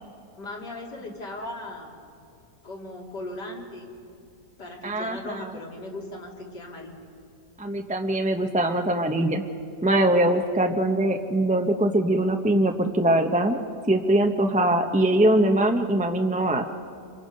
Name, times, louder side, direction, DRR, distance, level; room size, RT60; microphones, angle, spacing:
voice 1, 0.4-1.9 2.6-3.9 4.6-7.0 10.4-10.5, left 1 dB, 80° left, -2 dB, 3.5 m, -38 dB
voice 2, 4.8-5.6 7.6-9.4 9.8-13.6 13.9-16.6, right 1 dB, 10° right, 4 dB, 0.5 m, -22 dB
27.0 x 24.0 x 5.3 m, 2.4 s
omnidirectional pair, 1.8 m